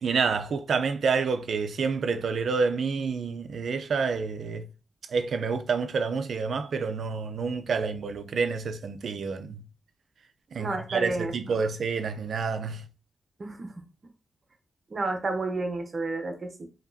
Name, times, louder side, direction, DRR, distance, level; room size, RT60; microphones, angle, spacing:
voice 1, 0.0-4.7 5.1-9.6 10.5-12.8, right 5 dB, 65° right, 0.5 m, -28 dB
voice 2, 10.6-11.3 13.4-13.7 14.9-16.7, right 2 dB, 40° right, 0.9 m, -31 dB
5.0 x 2.9 x 2.7 m
wide cardioid pair, 120°, 0 cm